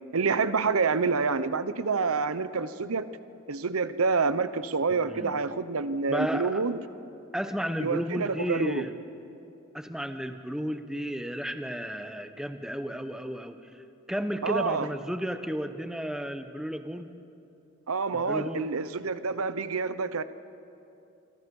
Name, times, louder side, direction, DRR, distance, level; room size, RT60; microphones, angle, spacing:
voice 1, 0.1-3.1 3.5-6.8 7.8-8.9 14.4-14.9 17.9-20.2, right 4 dB, 80° right, 13 dB, 0.8 m, -27 dB
voice 2, 6.1-6.6 7.3-8.9 9.7-17.1 18.1-18.7, equal, 5° right, 8 dB, 0.9 m, -33 dB
26.0 x 25.5 x 5.4 m, 2.7 s
head